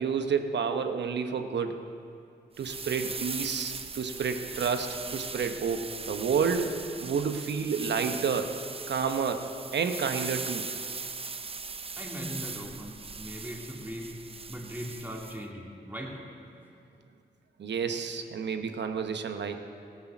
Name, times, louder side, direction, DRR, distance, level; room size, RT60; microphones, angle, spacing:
voice 1, 0.0-1.9 2.6-6.8 7.0-8.5 8.9-10.6 17.6-19.6, right 6 dB, 70° right, 7 dB, 1.0 m, -30 dB
sound 1, 2.6-15.4, right 4 dB, 30° right, 0.6 m, -39 dB
voice 2, 12.0-14.1 14.5-16.1, equal, 10° right, -2 dB, 2.8 m, -39 dB
15.5 x 8.6 x 6.1 m, 2.5 s
supercardioid pair, 50°, 19 cm